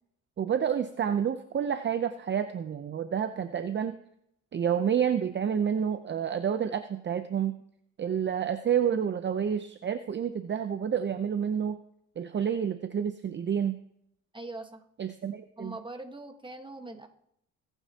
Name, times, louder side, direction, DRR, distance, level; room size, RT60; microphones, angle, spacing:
voice 1, 0.4-4.0 4.5-7.5 8.0-11.8 12.2-13.8 15.0-15.7, right 8 dB, 40° right, 10 dB, 0.6 m, -29 dB
voice 2, 14.3-14.8 15.6-17.1, right 2 dB, 15° right, 6 dB, 1.4 m, -42 dB
22.0 x 9.1 x 2.9 m, 0.73 s
cardioid pair, 90°, 30 cm